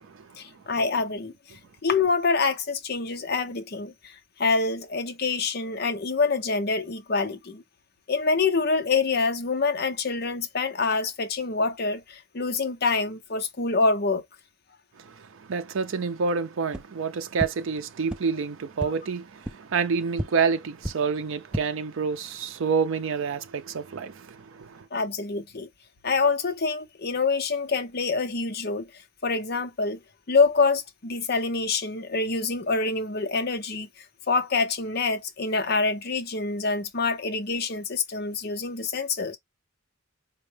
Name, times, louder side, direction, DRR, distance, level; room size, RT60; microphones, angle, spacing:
voice 1, 0.4-7.6 8.1-14.2 24.9-25.7 26.0-28.9 29.2-30.0 30.3-39.4, left 4 dB, 50° left, 0.7 m, -26 dB
voice 2, 15.2-24.8, right 5 dB, 70° right, 0.5 m, -28 dB
sound 1, 16.7-16.8 17.4-17.5 18.1-18.2 18.8-18.9 19.4-19.5 20.1-20.2 20.8-20.9 21.4-21.6, equal, 5° right, 0.3 m, -30 dB
4.3 x 2.2 x 3.2 m
head